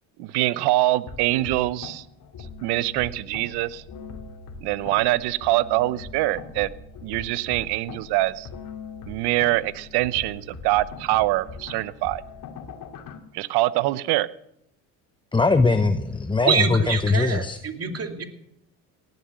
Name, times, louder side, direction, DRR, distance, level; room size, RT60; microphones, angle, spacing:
voice 1, 0.2-2.0 2.6-3.8 4.6-6.7 7.0-8.5 9.1-12.2 13.3-14.3, right 17 dB, 65° right, 18 dB, 0.9 m, -24 dB
sound 1, 1.1-13.2, left 4 dB, 50° left, 2.8 m, -41 dB
voice 2, 15.3-17.6, left 3 dB, 10° left, 10 dB, 0.9 m, -21 dB
voice 3, 16.4-18.2, right 6 dB, 35° right, 5 dB, 2.7 m, -25 dB
18.0 x 12.5 x 6.3 m, 0.76 s
hypercardioid pair, 75°, 43 cm